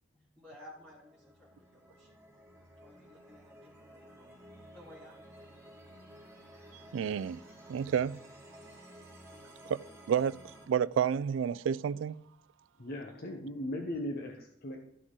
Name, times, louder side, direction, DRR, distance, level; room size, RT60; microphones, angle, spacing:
voice 1, 0.1-2.1 2.8-5.6, left 1 dB, 10° left, 2.9 m, -56 dB
sound 1, 0.7-10.6, equal, 15° right, 2.7 m, -54 dB
voice 2, 6.9-7.4 7.7-8.2 9.7-9.8 10.1-10.4 10.7-12.1, right 8 dB, 80° right, 0.3 m, -30 dB
voice 3, 12.8-15.0, left 1 dB, 50° left, 1.0 m, -38 dB
13.0 x 6.1 x 3.9 m
head